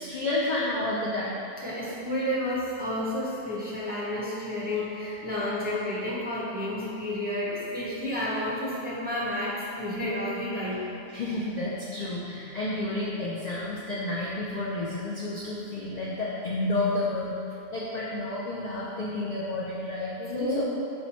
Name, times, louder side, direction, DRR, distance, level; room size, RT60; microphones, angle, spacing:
voice 1, 0.0-1.4 11.1-17.4 17.7-20.6, left 2 dB, 55° left, -6 dB, 0.5 m, -30 dB
voice 2, 1.6-10.9 20.3-20.6, left 1 dB, 10° right, -9 dB, 0.7 m, -31 dB
5.6 x 2.1 x 4.1 m, 2.8 s
omnidirectional pair, 1.1 m